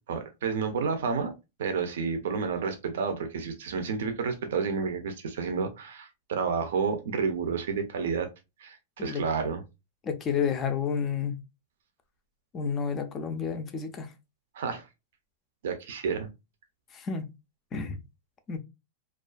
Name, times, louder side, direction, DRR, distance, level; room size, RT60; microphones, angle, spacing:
voice 1, 0.1-1.3 1.6-8.3 8.6-9.6 14.5-14.9 15.6-16.3, right 5 dB, 80° right, 0.5 m, -30 dB
voice 2, 10.0-11.4 12.5-14.1 16.9-17.3 17.7-18.0 18.5-18.6, left 6 dB, 20° left, 0.4 m, -30 dB
2.4 x 2.2 x 2.3 m
supercardioid pair, 155°, 0 cm